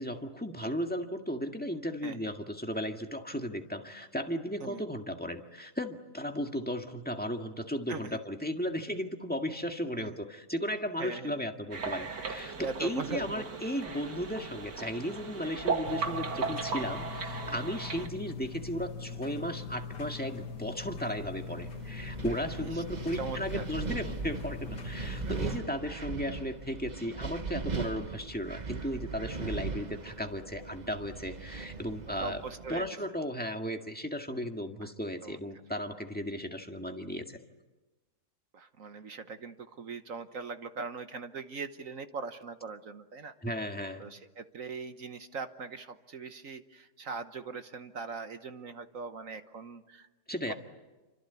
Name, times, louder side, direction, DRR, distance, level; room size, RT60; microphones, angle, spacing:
voice 1, 0.0-32.4 32.7-37.4 43.4-44.0 50.3-50.5, equal, 5° left, 3 dB, 1.7 m, -35 dB
voice 2, 7.9-8.2 10.0-10.2 11.0-11.4 12.6-13.5 22.6-22.8 23.2-23.6 31.6-31.8 32.2-32.9 35.2-35.4 38.5-43.3 44.0-50.1, right 4 dB, 55° right, 9 dB, 1.4 m, -41 dB
sound 1, 11.7-18.1, right 5 dB, 80° right, 2.7 m, -36 dB
sound 2, 15.8-25.6, left 5 dB, 80° left, 2.2 m, -42 dB
Wind, 21.4-32.9, right 4 dB, 30° right, 1.1 m, -39 dB
28.5 x 25.5 x 8.3 m, 1.1 s
omnidirectional pair, 1.8 m